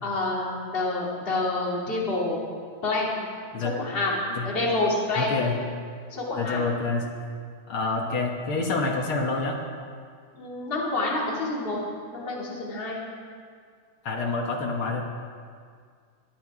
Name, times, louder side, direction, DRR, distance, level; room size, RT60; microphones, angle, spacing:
voice 1, 0.0-2.4 2.8-3.2 3.6-4.2 4.4-5.3 6.1-6.7 10.3-11.8 12.1-13.0, left 2 dB, 20° left, -5 dB, 2.6 m, -28 dB
voice 2, 5.1-5.6 6.4-7.0 7.7-9.6 14.0-15.0, left 3 dB, 55° left, 0 dB, 1.7 m, -27 dB
20.0 x 11.5 x 4.9 m, 2.1 s
omnidirectional pair, 3.7 m